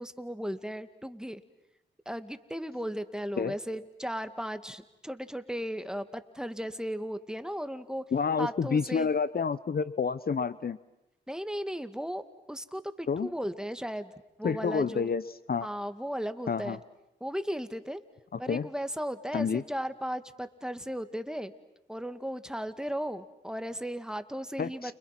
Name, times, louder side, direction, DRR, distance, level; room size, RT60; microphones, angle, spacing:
voice 1, 0.0-1.4 2.1-8.0 8.4-9.1 11.3-12.2 12.5-14.1 14.4-15.1 15.6-16.8 17.2-18.0 18.4-21.5 21.9-24.9, equal, 5° right, 10 dB, 2.2 m, -36 dB
voice 2, 8.1-10.8 13.1-13.3 14.4-15.2 15.5-15.7 16.5-16.8 18.5-18.7 19.3-19.6 24.6-24.9, left 5 dB, 50° left, 15 dB, 0.9 m, -29 dB
30.0 x 30.0 x 6.1 m, 0.91 s
supercardioid pair, 45°, 19 cm